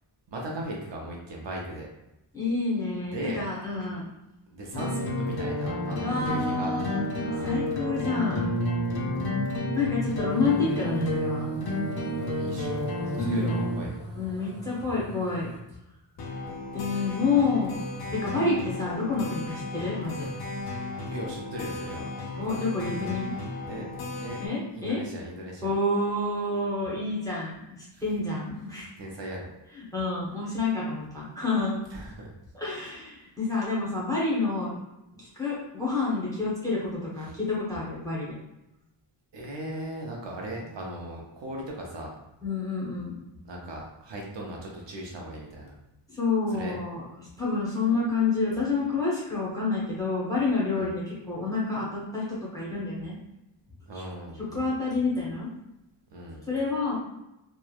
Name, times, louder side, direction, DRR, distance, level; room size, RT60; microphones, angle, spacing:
voice 1, 0.3-1.9 3.1-3.4 4.5-6.7 7.2-7.7 9.0-9.4 12.4-14.0 20.2-20.3 21.1-22.1 22.9-23.1 23.7-24.4 24.7-25.7 27.9-28.0 29.0-29.5 31.9-32.3 37.2-37.3 39.3-42.2 43.4-45.7 46.5-46.8 50.8-50.9 53.9-54.6 56.1-56.4, right 1 dB, 60° right, -2 dB, 0.6 m, -38 dB
voice 2, 2.3-4.0 6.0-8.5 9.8-11.4 13.2-13.6 14.2-15.5 16.7-17.7 18.1-20.3 22.4-23.3 24.4-25.0 25.6-27.6 28.0-28.9 29.8-31.8 32.5-34.7 35.1-38.4 42.4-43.2 46.1-53.2 53.9-54.0 54.4-55.5 56.5-56.9, left 3 dB, 5° left, -7 dB, 0.8 m, -28 dB
sound 1, 4.7-13.8 16.2-24.5, left 1 dB, 50° left, 0.5 m, -31 dB
sound 2, 10.3-15.6, equal, 15° right, 1.1 m, -43 dB
3.0 x 2.1 x 2.3 m, 0.91 s
wide cardioid pair, 170°, 49 cm